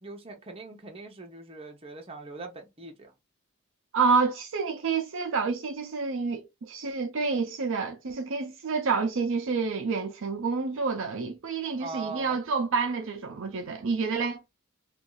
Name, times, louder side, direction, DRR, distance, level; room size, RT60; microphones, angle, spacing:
voice 1, 0.0-3.1 11.8-12.4, right 4 dB, 25° right, 0.8 m, -41 dB
voice 2, 3.9-14.4, right 4 dB, 60° right, 0.5 m, -28 dB
2.6 x 2.4 x 3.8 m
head